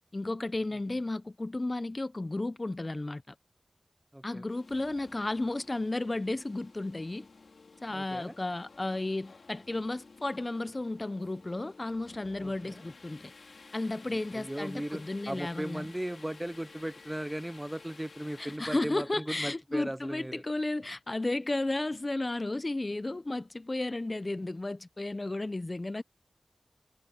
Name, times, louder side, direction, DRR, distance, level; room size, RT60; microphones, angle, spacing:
voice 1, 0.1-3.3 4.2-7.3 7.8-13.3 13.7-15.9 18.4-26.0, left 2 dB, 40° left, 0.8 m, -33 dB
voice 2, 4.1-4.4 7.9-8.3 12.4-12.8 14.3-15.0 15.3-20.4, right 1 dB, 15° right, 0.7 m, -37 dB
sound 1, 4.5-18.6, left 4 dB, 90° left, 2.8 m, -54 dB
cardioid pair, 45°, 0 cm